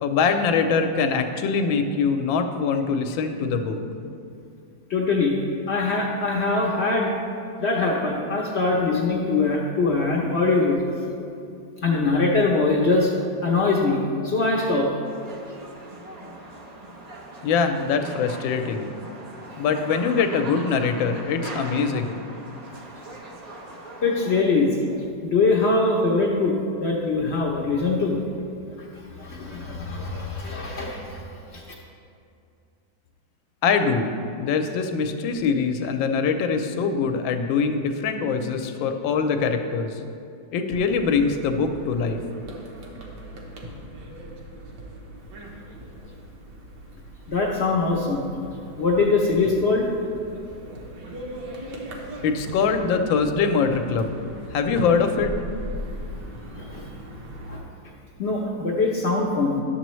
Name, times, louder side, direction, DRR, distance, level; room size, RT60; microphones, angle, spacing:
voice 1, 0.0-3.8 17.4-18.9 19.5-22.2 33.6-40.0 40.5-42.2 52.2-54.1 54.5-55.3, left 5 dB, 90° left, 7 dB, 1.4 m, -23 dB
voice 2, 4.9-5.4 5.7-7.1 7.6-10.8 11.8-13.1 13.4-14.9 24.0-24.8 25.2-28.2 29.1-31.6 47.3-48.3 48.8-49.9 56.6-56.9 57.5-57.6 58.2-59.6, left 3 dB, 65° left, -1 dB, 0.6 m, -22 dB
sound 1, 15.0-24.4, right 1 dB, 85° right, 0.3 m, -40 dB
sound 2, 40.7-57.6, equal, 65° right, 1.5 m, -39 dB
10.5 x 6.9 x 3.1 m, 2.6 s
omnidirectional pair, 2.1 m